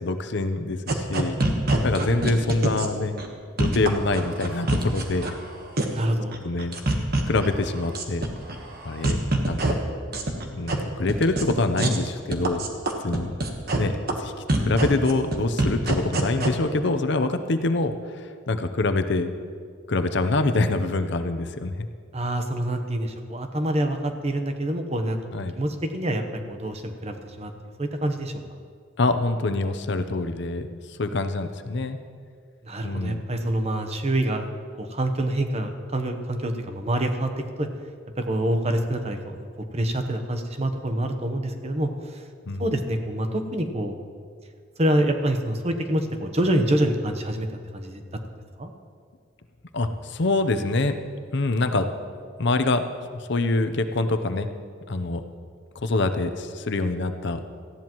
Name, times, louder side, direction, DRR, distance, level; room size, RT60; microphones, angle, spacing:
voice 1, 0.0-1.4 1.8-3.1 3.6-5.3 6.4-6.8 7.3-8.2 8.8-9.2 9.5-9.7 10.5-12.7 13.0-13.3 13.8-13.9 14.2-14.3 14.6-17.9 18.5-19.3 19.9-21.9 25.3-25.5 29.0-32.0 32.8-33.3 42.5-42.7 49.7-50.9 51.3-51.9 52.4-52.8 53.3-54.5 54.9-55.2 55.8-57.4, left 2 dB, 60° left, 8 dB, 0.7 m, -25 dB
sound 1, 0.9-2.9 3.2-3.3 3.6-5.3 5.8-6.0 6.3-7.5 7.7-8.5 8.8-9.7 10.1-10.7 11.1-11.5 11.8-12.0 12.3-13.8 14.1-14.2 14.5-16.5, right 2 dB, 50° right, 1.3 m, -24 dB
voice 2, 5.9-6.4 22.1-25.2 25.5-27.5 27.8-28.3 32.6-34.5 34.8-37.3 37.6-37.7 38.2-39.4 39.7-41.9 42.6-43.9 44.8-47.5 47.7-48.0 48.6-48.7, right 1 dB, 35° right, 6 dB, 0.9 m, -26 dB
18.0 x 14.5 x 3.1 m, 2.1 s
head